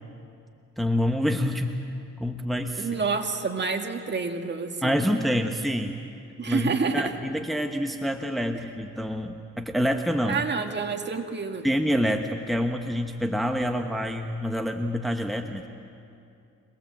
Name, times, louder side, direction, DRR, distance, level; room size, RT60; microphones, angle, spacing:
voice 1, 0.8-1.7 2.2-2.9 4.8-6.0 6.5-10.4 11.6-15.7, equal, ahead, 4 dB, 1.1 m, -27 dB
voice 2, 2.7-4.9 6.4-7.1 8.5-8.6 10.3-11.7, right 4 dB, 35° right, 4 dB, 2.0 m, -28 dB
26.0 x 19.5 x 7.7 m, 2.5 s
cardioid pair, 90°, 30 cm